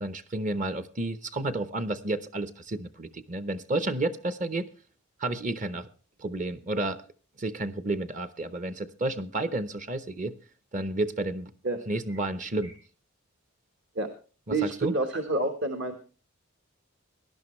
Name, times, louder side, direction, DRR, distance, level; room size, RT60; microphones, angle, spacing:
voice 1, 0.0-4.7 5.2-5.9 6.2-7.0 7.4-10.3 10.7-11.5 11.9-12.7 14.5-14.9, right 2 dB, 35° right, 12 dB, 0.8 m, -31 dB
voice 2, 14.5-16.0, right 2 dB, 60° right, 5 dB, 1.3 m, -29 dB
19.0 x 11.5 x 3.2 m, 0.37 s
head